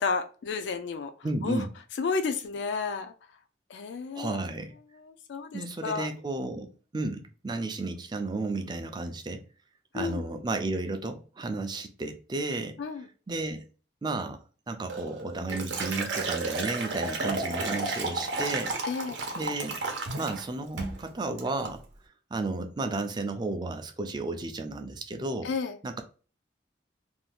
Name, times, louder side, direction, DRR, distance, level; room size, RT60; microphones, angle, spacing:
voice 1, 0.0-1.1 1.4-1.6 1.9-3.1 3.7-4.4 4.9-6.1 9.9-10.3 12.8-13.0 18.8-19.2 25.4-25.8, left 5 dB, 85° left, 0.4 m, -31 dB
voice 2, 1.2-1.7 4.1-4.7 5.5-9.4 9.9-12.8 13.3-13.7 14.0-18.9 19.4-19.8 20.2-21.8 22.3-25.5 25.8-26.0, right 2 dB, 25° right, 0.3 m, -33 dB
Liquid, 14.9-20.4 20.8-21.0 21.4-21.8, right 3 dB, 85° right, 0.7 m, -32 dB
2.6 x 2.3 x 3.3 m
head